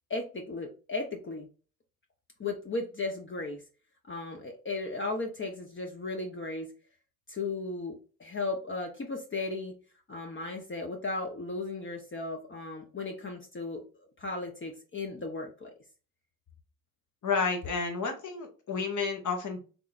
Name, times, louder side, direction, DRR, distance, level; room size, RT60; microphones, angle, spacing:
voice 1, 0.1-1.5 2.4-3.6 4.1-6.7 7.3-9.7 10.1-13.8 14.2-15.7, left 3 dB, 30° left, 2 dB, 0.9 m, -36 dB
voice 2, 17.2-19.6, left 5 dB, 50° left, 4 dB, 1.4 m, -31 dB
3.5 x 3.3 x 2.4 m, 0.36 s
hypercardioid pair, 55°, 38 cm